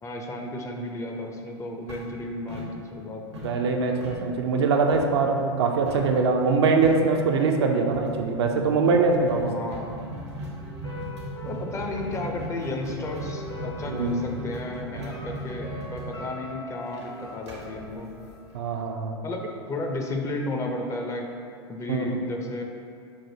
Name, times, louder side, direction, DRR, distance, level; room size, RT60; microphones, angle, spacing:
voice 1, 0.0-3.5 9.4-9.9 11.4-18.1 19.2-21.3 21.7-22.6, left 2 dB, 20° left, 2 dB, 0.4 m, -33 dB
sound 1, 1.9-3.1 3.3-5.2 5.9-6.2 6.5-6.6 6.8-7.2 7.9-18.7, right 1 dB, 80° right, 0.9 m, -38 dB
voice 2, 3.4-9.5 13.9-14.2 18.5-19.2 21.9-22.1, right 4 dB, 65° right, 3 dB, 0.4 m, -23 dB
sound 2, 10.0-19.0 19.3-19.4, left 1 dB, 75° left, 1.5 m, -42 dB
5.7 x 2.5 x 2.7 m, 2.3 s
hypercardioid pair, 95°, 14 cm